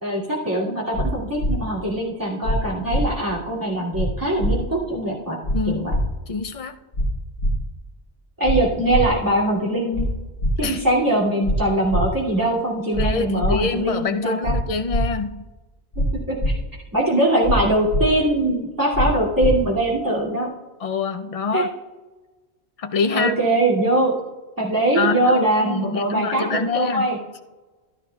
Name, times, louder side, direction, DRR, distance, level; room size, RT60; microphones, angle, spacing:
voice 1, 0.0-5.4 5.7-5.9 8.4-10.0 10.6-14.5 16.0-16.6 16.9-20.5 21.5-21.6 23.1-24.1 24.6-27.2, right 1 dB, 15° right, -5 dB, 2.5 m, -22 dB
sound 1, 0.9-1.1 1.4-1.5 2.4-2.6 2.9-3.0 3.9-4.1 4.4-4.5 5.4-5.6 5.9-6.0 6.9-7.1 7.4-7.5 8.4-8.6 8.9-9.0 9.9-10.1 10.4-10.5 11.4-11.6 11.9-12.0 12.9-13.1 13.4-13.5 14.4-14.6 14.9-15.0 15.9-16.1 16.4-16.5 17.4-17.6 17.9-18.0 18.9-19.1 19.4-19.5, equal, 80° left, 1.6 m, -22 dB
voice 2, 5.5-6.8 10.6-10.9 13.0-15.4 20.8-21.7 22.8-23.3 25.0-27.1, left 4 dB, 45° left, 7 dB, 0.4 m, -26 dB
14.0 x 12.0 x 2.3 m, 1.2 s
omnidirectional pair, 1.2 m